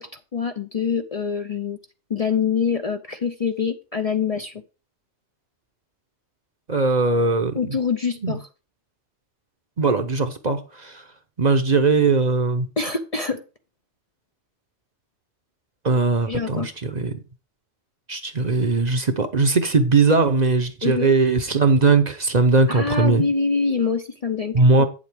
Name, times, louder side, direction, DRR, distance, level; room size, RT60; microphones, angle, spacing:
voice 1, 0.0-1.8 2.1-4.5 7.5-8.5 12.8-13.4 16.3-16.7 20.8-21.1 22.7-24.9, left 5 dB, 40° left, 0.6 m, -25 dB
voice 2, 6.7-7.8 8.2-8.4 9.8-11.0 11.4-12.7 15.8-17.2 18.1-23.2 24.5-24.9, right 3 dB, 40° right, 0.8 m, -19 dB
8.8 x 7.3 x 3.4 m
omnidirectional pair, 1.2 m